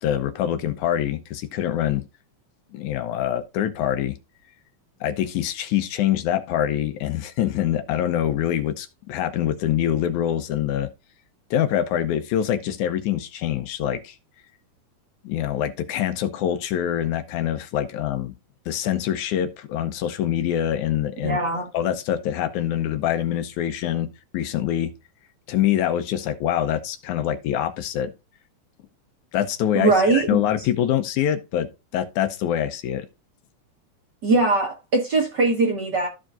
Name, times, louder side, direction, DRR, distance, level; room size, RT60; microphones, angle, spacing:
voice 1, 0.0-2.0 2.7-4.2 5.0-10.9 11.5-14.2 15.2-18.3 18.7-21.4 21.7-24.1 24.3-24.9 25.5-28.1 29.3-33.1, left 11 dB, 75° left, 2.2 m, -25 dB
voice 2, 21.2-21.7 29.7-30.4 34.2-36.1, right 3 dB, 45° right, 1.7 m, -21 dB
14.5 x 5.0 x 2.5 m
omnidirectional pair, 3.5 m